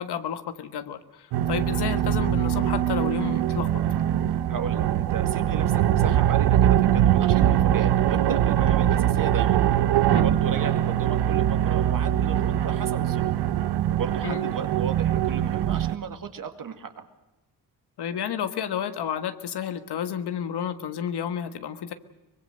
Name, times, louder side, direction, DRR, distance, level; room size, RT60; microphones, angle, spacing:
voice 1, 0.0-3.8 10.1-10.4 14.2-14.5 18.0-21.9, left 8 dB, 80° left, 10 dB, 1.6 m, -31 dB
sound 1, 1.3-15.9, right 11 dB, 85° right, 0.9 m, -22 dB
voice 2, 4.5-9.6 10.1-13.3 13.9-17.1, right 6 dB, 55° right, 7 dB, 2.3 m, -35 dB
24.0 x 21.5 x 6.6 m, 1.0 s
cardioid pair, 90°, 39 cm